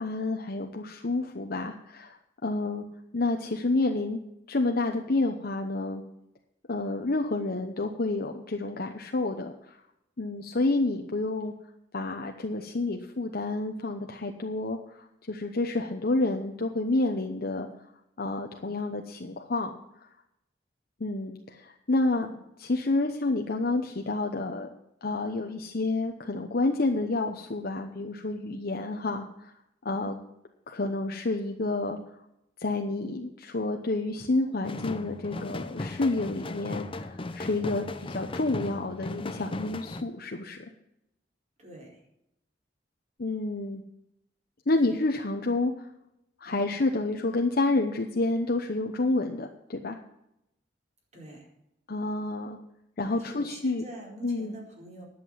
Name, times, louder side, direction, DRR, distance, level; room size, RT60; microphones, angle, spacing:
voice 1, 0.0-2.8 3.1-4.2 4.5-6.0 6.7-9.8 10.2-11.5 11.9-17.7 18.2-19.7 20.0-20.1 21.0-22.3 22.6-24.7 25.0-29.5 29.8-30.2 30.7-32.0 32.6-40.6 43.2-43.8 44.7-45.9 46.4-50.0 51.9-52.6 53.0-53.8 54.2-54.5, left 2 dB, 55° left, 3 dB, 0.9 m, -29 dB
voice 2, 22.0-22.4 41.6-42.0 44.7-45.0 46.4-46.7 51.1-51.5 53.0-55.0, right 1 dB, 40° right, -2 dB, 4.6 m, -45 dB
sound 1, 34.6-40.0, left 2 dB, 30° left, 0.7 m, -37 dB
11.0 x 7.7 x 7.5 m, 0.82 s
head